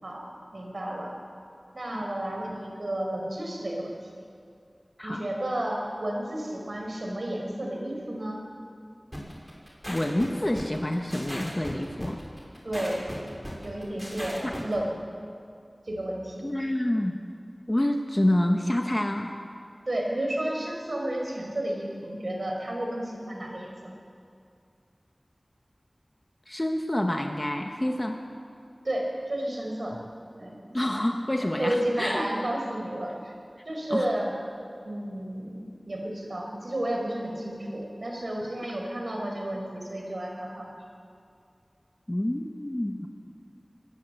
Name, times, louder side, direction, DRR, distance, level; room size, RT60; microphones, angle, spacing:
voice 1, 0.0-1.1 1.7-4.0 5.0-8.4 12.6-13.0 13.6-15.0 15.8-16.5 19.9-23.9 28.8-30.0 30.4-30.7 31.6-33.3 33.7-34.3 34.8-40.7, right 1 dB, 70° right, 0 dB, 5.3 m, -32 dB
voice 2, 5.0-5.3 9.9-12.2 14.4-14.5 16.4-17.3 17.7-19.4 26.5-28.2 30.7-32.2 33.9-34.1 42.1-43.1, left 1 dB, 30° left, 3 dB, 1.6 m, -27 dB
sound 1, 9.1-14.7, equal, ahead, 6.2 m, -38 dB
24.5 x 18.5 x 8.0 m, 2.4 s
wide cardioid pair, 45°, 0 cm